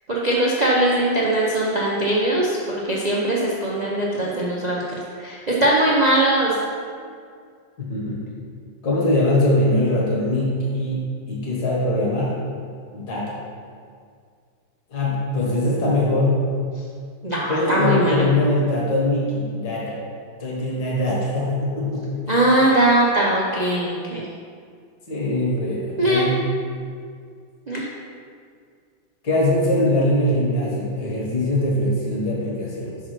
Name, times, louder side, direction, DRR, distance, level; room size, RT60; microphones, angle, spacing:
voice 1, 0.1-6.5 17.2-18.2 22.3-24.3 26.0-26.2 27.7-27.8, right 1 dB, 75° right, -5 dB, 0.4 m, -20 dB
voice 2, 7.8-8.2 8.8-12.3 12.9-13.4 14.9-16.4 17.5-20.0 20.4-22.2 25.1-26.4 29.2-33.0, left 1 dB, 55° left, -5 dB, 2.1 m, -22 dB
5.8 x 4.9 x 5.8 m, 2.1 s
omnidirectional pair, 2.1 m